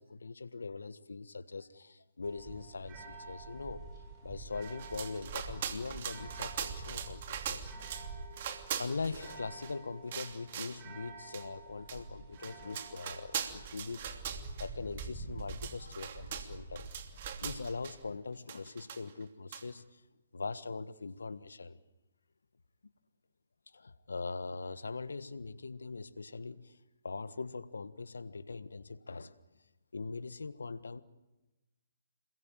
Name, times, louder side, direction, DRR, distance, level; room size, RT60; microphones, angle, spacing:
voice 1, 0.0-3.8 4.2-7.7 8.8-14.3 14.6-16.9 17.4-19.8 20.3-21.8 23.7-26.8 27.0-29.4 29.9-31.0, left 4 dB, 80° left, 15 dB, 1.4 m, -41 dB
sound 1, 2.2-18.1, right 3 dB, 20° right, 7.9 m, -47 dB
sound 2, 4.6-8.1 8.3-9.7 10.1-10.8 11.3-11.4 11.9-12.0 12.3-14.7 15.0-15.1 15.4-18.0 18.5-19.2 19.5-19.6, right 9 dB, 45° right, 2.8 m, -41 dB
27.5 x 22.0 x 9.0 m, 1.0 s
hypercardioid pair, 140°, 0 cm